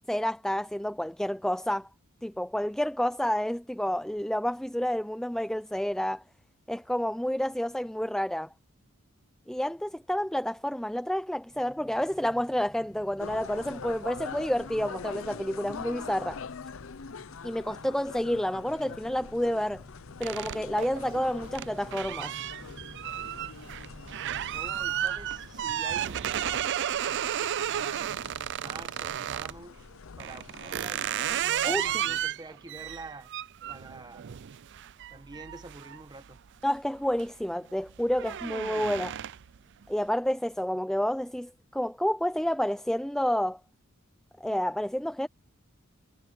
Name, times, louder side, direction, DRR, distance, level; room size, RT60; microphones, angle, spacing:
voice 1, 0.1-1.9 2.2-6.2 6.7-8.5 9.5-16.4 17.4-19.8 20.2-22.3 31.6-31.9 36.6-39.2 39.9-43.6 44.4-45.3, equal, 5° left, 0.5 m, -29 dB
sound 1, 11.5-25.7, equal, 20° left, 6.3 m, -53 dB
sound 2, 13.2-32.3, left 5 dB, 70° left, 0.7 m, -44 dB
sound 3, 20.2-29.6 30.2-36.6 37.0-37.4 37.7-39.6, right 11 dB, 60° right, 0.4 m, -33 dB
voice 2, 24.5-29.8 30.2-33.3 33.7-34.3 35.1-36.4, right 2 dB, 20° right, 1.5 m, -47 dB
head